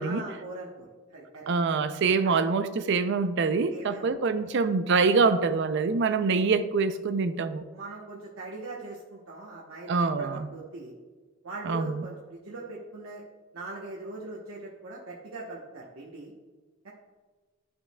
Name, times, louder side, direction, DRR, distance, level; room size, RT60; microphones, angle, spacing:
voice 1, 0.0-1.5 2.2-2.4 3.7-4.1 7.7-10.9 11.4-13.2 13.5-16.3 16.8-16.9, right 2 dB, 90° right, -4 dB, 1.0 m, -41 dB
voice 2, 1.5-7.6 9.9-10.5 11.7-12.0, right 4 dB, 60° right, 11 dB, 0.4 m, -25 dB
11.5 x 5.5 x 2.2 m, 1.3 s
head